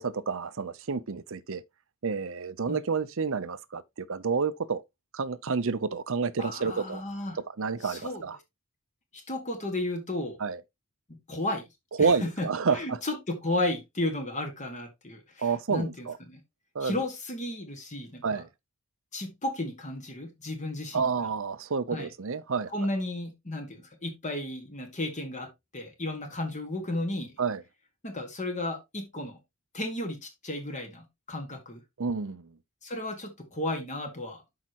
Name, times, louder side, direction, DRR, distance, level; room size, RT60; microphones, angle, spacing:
voice 1, 0.0-1.6 2.0-4.8 5.1-7.0 7.4-8.4 10.4-10.6 12.0-13.0 15.4-16.2 16.7-17.0 18.2-18.5 20.9-22.7 27.4-27.6 32.0-32.5, right 5 dB, 60° right, 0.7 m, -29 dB
voice 2, 6.4-7.4 7.8-8.2 9.1-10.4 11.1-11.7 12.0-16.4 16.8-18.4 19.1-21.1 21.9-22.1 22.7-27.3 28.0-29.4 29.7-31.8 32.8-34.6, left 1 dB, 35° left, 1.8 m, -34 dB
12.0 x 4.8 x 3.0 m
head